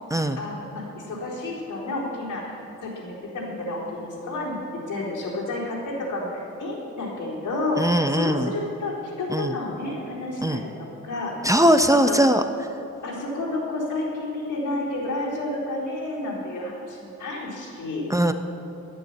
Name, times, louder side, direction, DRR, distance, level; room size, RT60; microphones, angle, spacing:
voice 1, 0.4-10.7 11.0-11.3 11.9-12.2 13.0-18.0, left 2 dB, 85° left, -4 dB, 4.1 m, -30 dB
voice 2, 7.8-8.5 9.3-9.5 10.4-10.6 11.4-12.4 18.1-18.3, right 1 dB, 10° right, 7 dB, 0.6 m, -20 dB
12.0 x 10.5 x 8.5 m, 2.8 s
wide cardioid pair, 125°, 30 cm